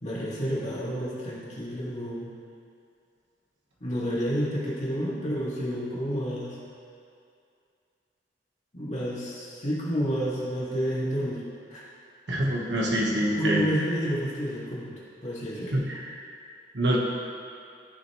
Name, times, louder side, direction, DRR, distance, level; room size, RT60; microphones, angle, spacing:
voice 1, 0.0-2.3 3.8-6.6 8.7-11.4 11.7-11.8 13.1-15.7, equal, 40° left, -7 dB, 2.4 m, -30 dB
voice 2, 12.3-13.6 15.7-16.2 16.7-17.0, right 1 dB, 70° right, -3 dB, 1.4 m, -26 dB
14.5 x 6.1 x 3.2 m, 2.5 s
head